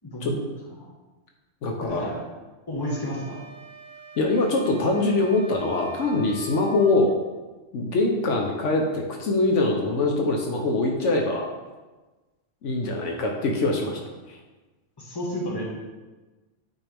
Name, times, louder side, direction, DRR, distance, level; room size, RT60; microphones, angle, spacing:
voice 1, 0.0-0.4 0.8-0.9 1.8-2.2 2.7-3.4 15.0-15.6, equal, 20° left, -4 dB, 1.4 m, -31 dB
voice 2, 1.6-2.1 4.2-7.1 7.7-11.5 12.6-14.0 14.3-14.4, left 2 dB, 75° left, 1 dB, 1.1 m, -23 dB
sound 1, 2.8-7.1, right 1 dB, 50° right, 1.1 m, -44 dB
8.8 x 4.4 x 3.4 m, 1.2 s
omnidirectional pair, 1.3 m